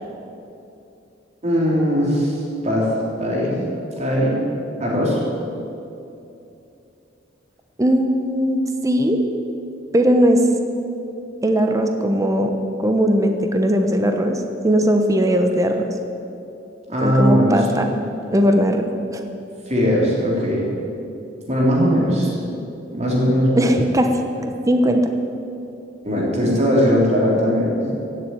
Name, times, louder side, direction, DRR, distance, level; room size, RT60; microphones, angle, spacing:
voice 1, 1.4-2.4 2.6-2.9 3.2-3.5 4.0-4.4 4.8-5.2 16.9-17.8 19.7-20.6 21.5-22.4 22.9-23.7 26.0-27.8, equal, 35° right, -4 dB, 3.5 m, -19 dB
voice 2, 7.8-9.2 9.9-10.5 11.4-12.5 12.8-15.9 17.0-17.9 18.3-19.2 23.6-25.1, equal, 15° right, 5 dB, 1.0 m, -19 dB
16.0 x 7.7 x 9.2 m, 2.7 s
head